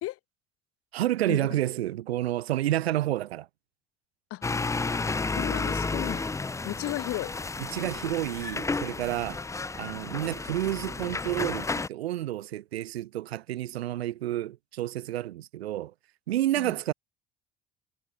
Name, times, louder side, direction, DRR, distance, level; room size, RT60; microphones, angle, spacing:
voice 1, 0.9-3.5 7.7-9.4 9.7-15.9 16.3-16.9, right 14 dB, 80° right, 0.5 m, -30 dB
sound 1, 4.4-11.9, left 3 dB, 10° left, 0.5 m, -32 dB
voice 2, 5.3-6.3 6.6-7.3 16.6-16.7, left 16 dB, 45° left, 0.8 m, -34 dB
figure-of-eight pair, 55°, 31 cm